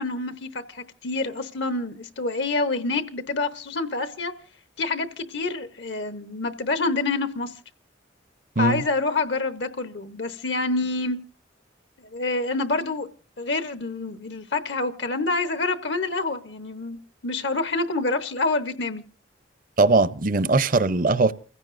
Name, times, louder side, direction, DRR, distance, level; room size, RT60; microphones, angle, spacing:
voice 1, 0.0-4.3 4.8-7.5 8.6-11.2 12.1-13.1 13.4-19.0, left 3 dB, 65° left, 0.9 m, -27 dB
voice 2, 19.8-21.3, right 3 dB, 45° right, 0.6 m, -20 dB
29.0 x 15.5 x 2.5 m
head